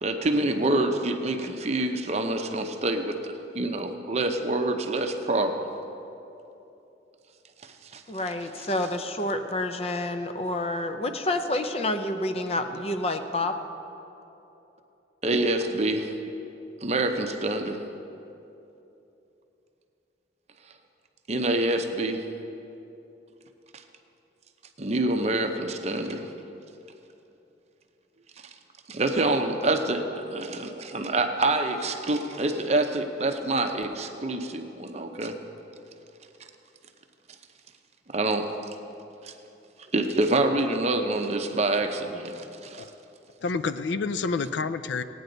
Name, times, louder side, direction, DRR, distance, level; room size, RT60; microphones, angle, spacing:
voice 1, 0.0-5.7 7.9-8.0 15.2-16.1 16.8-17.8 21.3-22.2 24.8-26.2 28.9-35.3 38.1-38.5 39.2-39.3 39.9-42.8, right 2 dB, 35° right, 5 dB, 0.7 m, -26 dB
voice 2, 8.1-13.5, left 1 dB, 35° left, 7 dB, 0.6 m, -28 dB
voice 3, 43.4-45.0, left 4 dB, 75° left, 12 dB, 0.4 m, -28 dB
17.5 x 9.4 x 3.9 m, 2.9 s
head